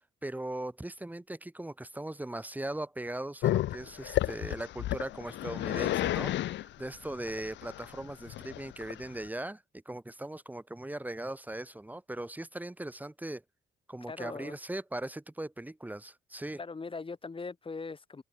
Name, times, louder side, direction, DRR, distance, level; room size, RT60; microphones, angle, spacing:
voice 1, 0.2-13.4 13.9-16.6, right 1 dB, 10° right, 2.3 m, -39 dB
Growling, 3.4-9.3, left 14 dB, 65° left, 0.4 m, -32 dB
voice 2, 14.1-14.6 16.6-18.2, left 4 dB, 25° left, 2.9 m, -40 dB
cardioid pair, 90°, 20 cm